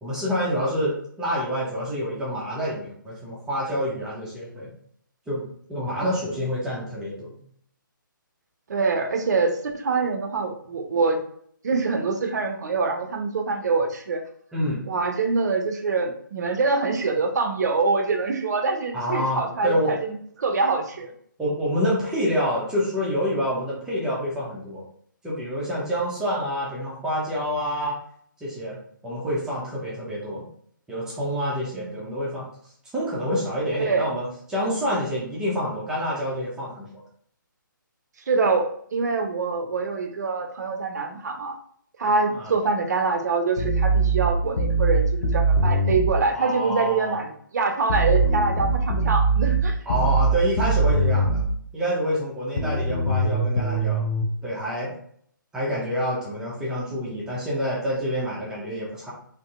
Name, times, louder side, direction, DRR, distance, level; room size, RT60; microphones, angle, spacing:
voice 1, 0.0-4.7 5.3-7.3 14.5-14.8 18.9-19.9 21.4-24.8 25.2-28.0 28.4-30.4 30.9-32.5 32.9-37.0 42.4-42.5 46.3-47.2 49.9-51.4 51.7-54.0 54.4-54.9 55.5-59.1, equal, 5° right, -6 dB, 0.6 m, -27 dB
voice 2, 8.7-11.2 11.6-14.2 14.8-21.1 31.7-32.0 33.8-34.1 38.3-41.6 42.0-49.8, right 4 dB, 55° right, 5 dB, 0.5 m, -25 dB
sound 1, 43.6-46.2 47.9-51.5 52.6-54.2, right 3 dB, 50° left, 0.6 m, -22 dB
2.6 x 2.5 x 2.4 m, 0.63 s
figure-of-eight pair, 145°, 11 cm